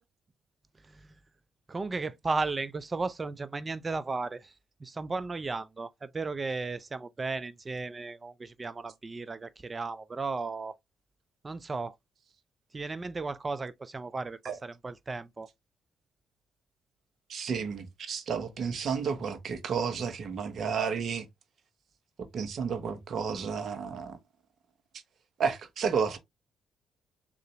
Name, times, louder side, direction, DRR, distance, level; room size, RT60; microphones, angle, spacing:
voice 1, 1.7-4.5 4.8-10.7 11.4-11.9 12.7-15.5, right 3 dB, 30° right, 0.4 m, -35 dB
voice 2, 17.3-21.3 22.3-24.1 25.4-26.2, right 6 dB, 60° right, 0.8 m, -31 dB
3.8 x 2.5 x 3.1 m
hypercardioid pair, 55°, 0 cm